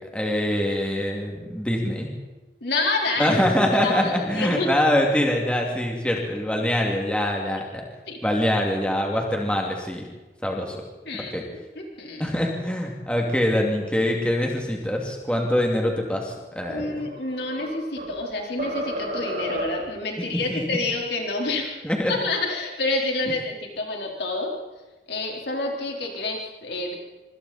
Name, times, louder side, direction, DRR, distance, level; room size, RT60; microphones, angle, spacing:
voice 1, 0.1-2.1 3.2-7.8 8.2-10.0 10.4-10.8 11.1-11.4 12.2-17.0 20.5-20.6 21.8-22.1, left 1 dB, 5° left, 0 dB, 2.6 m, -24 dB
voice 2, 2.6-3.4 3.8-4.7 8.1-8.2 11.0-12.3 16.7-21.7 22.1-24.5 25.1-26.9, left 2 dB, 70° left, -1 dB, 4.1 m, -28 dB
sound 1, 16.9-18.2 18.6-20.0, right 1 dB, 45° right, 7.1 m, -31 dB
25.5 x 25.5 x 4.3 m, 1.2 s
head